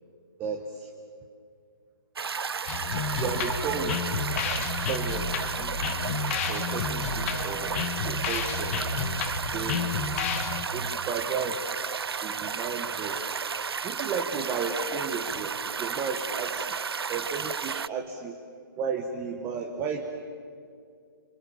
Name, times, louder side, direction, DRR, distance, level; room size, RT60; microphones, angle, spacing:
voice 1, 0.4-0.9 3.2-5.9 6.5-8.8 9.5-9.9 10.7-11.7 12.2-13.4 13.8-16.7 17.1-18.4 18.8-20.0, right 5 dB, 15° right, 4 dB, 1.4 m, -34 dB
sound 1, 2.2-17.9, right 6 dB, 90° right, 0.5 m, -33 dB
sound 2, 2.7-10.7, left 6 dB, 35° left, 1.8 m, -31 dB
28.5 x 25.5 x 7.2 m, 2.3 s
hypercardioid pair, 155°, 13 cm